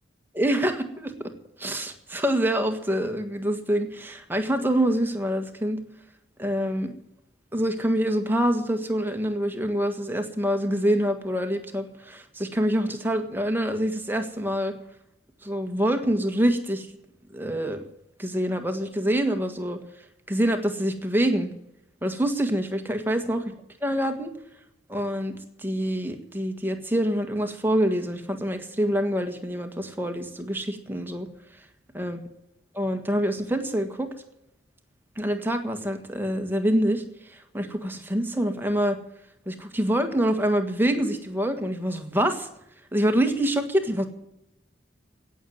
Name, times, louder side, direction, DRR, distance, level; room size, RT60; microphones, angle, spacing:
voice 1, 0.3-1.3 1.6-5.8 6.4-6.9 7.5-14.7 15.4-16.9 17.3-17.8 18.2-19.8 20.3-21.5 22.0-23.4 23.8-24.3 24.9-31.3 31.9-32.2 32.7-34.1 35.2-39.0 39.4-42.5 42.9-44.1, equal, 10° right, 6 dB, 1.7 m, -26 dB
17.5 x 7.2 x 9.2 m, 0.81 s
head